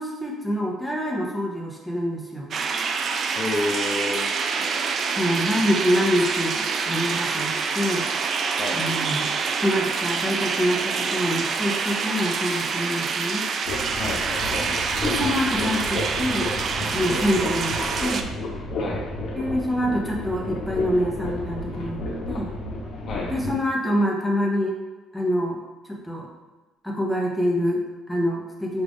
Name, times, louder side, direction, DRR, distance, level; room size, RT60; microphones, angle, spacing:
voice 1, 0.0-2.5 5.1-8.0 8.7-9.3 9.6-13.5 14.6-14.7 15.0-16.5 16.9-18.3 19.4-22.0 22.3-22.5 23.3-24.8 25.1-25.6 25.9-26.3 26.8-28.8, equal, ahead, -2 dB, 0.7 m, -26 dB
sound 1, 2.5-18.2, right 5 dB, 45° right, 0.3 m, -26 dB
voice 2, 3.4-4.3 8.6-8.8 14.0-14.7 18.8-19.1 23.0-23.3, left 2 dB, 40° left, -3 dB, 0.5 m, -29 dB
sound 2, 13.7-23.5, left 2 dB, 65° left, 0.9 m, -31 dB
5.0 x 2.4 x 3.5 m, 1.2 s
cardioid pair, 125°, 0 cm